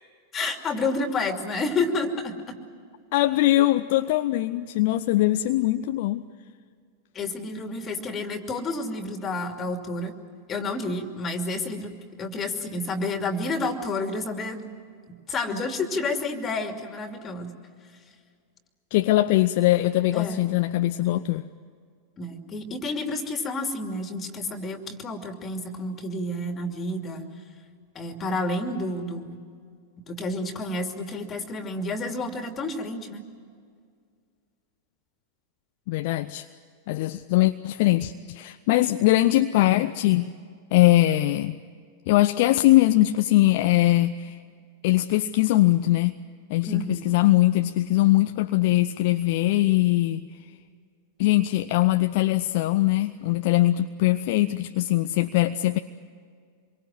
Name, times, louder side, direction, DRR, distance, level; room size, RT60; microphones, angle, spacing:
voice 1, 0.3-2.6 7.1-10.1 10.5-11.9 12.2-14.7 15.1-17.5 20.1-20.4 22.2-27.3 27.9-29.4 30.1-33.2 46.6-47.1, left 2 dB, 25° left, 6 dB, 2.8 m, -30 dB
voice 2, 3.1-6.2 18.9-21.4 35.9-36.5 36.9-40.3 40.7-41.6 42.1-44.4 44.8-46.2 46.5-50.2 51.2-55.8, left 16 dB, 50° left, 9 dB, 0.7 m, -21 dB
26.5 x 23.5 x 7.7 m, 2.1 s
figure-of-eight pair, 90°, 0 cm